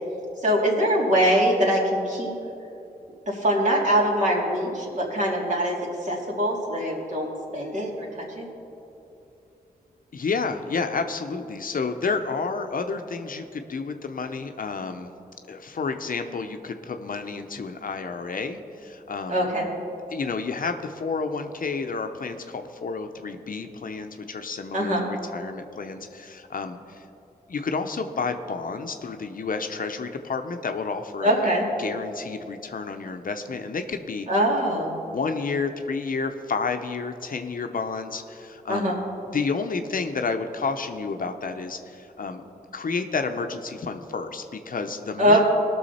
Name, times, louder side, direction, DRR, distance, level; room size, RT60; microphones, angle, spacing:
voice 1, 0.4-2.3 3.3-5.8 6.0-7.3 7.5-8.5 19.3-19.7 24.7-25.0 31.2-31.7 34.3-34.9 38.7-39.0 45.2-45.4, equal, 50° right, -3 dB, 2.9 m, -23 dB
voice 2, 10.1-15.1 15.5-19.5 20.1-27.0 27.5-31.4 31.8-34.3 35.0-39.0 39.3-42.4 42.7-45.4, left 4 dB, 55° left, 7 dB, 0.8 m, -30 dB
17.5 x 6.3 x 4.2 m, 2.8 s
cardioid pair, 55°, 17 cm